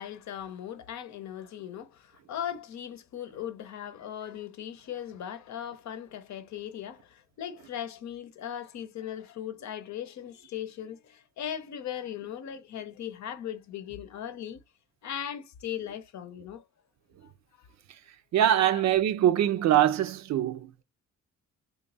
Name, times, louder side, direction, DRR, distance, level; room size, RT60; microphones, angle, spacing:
voice 1, 0.0-14.6 15.0-16.6 17.2-17.3 17.6-17.7 18.7-18.9, left 10 dB, 70° left, 0.8 m, -38 dB
voice 2, 18.3-20.8, right 11 dB, 65° right, 0.5 m, -23 dB
3.0 x 2.4 x 3.9 m
cardioid pair, 90°, 30 cm